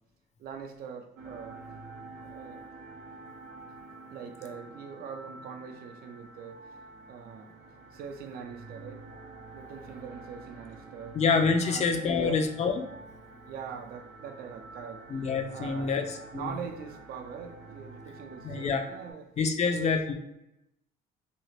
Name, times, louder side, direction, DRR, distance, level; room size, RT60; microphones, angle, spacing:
voice 1, 0.4-1.6 2.3-2.7 4.1-6.6 7.1-7.5 7.9-9.1 9.5-11.2 11.6-12.5 13.5-16.0 16.3-19.3 19.6-20.0, right 6 dB, 65° right, 0.5 m, -42 dB
sound 1, 1.2-19.1, right 3 dB, 85° right, 0.9 m, -48 dB
voice 2, 11.1-12.9 15.1-16.5 18.4-18.8 19.4-20.1, left 5 dB, 40° left, 0.5 m, -27 dB
3.0 x 2.4 x 3.0 m
cardioid pair, 110°, 17 cm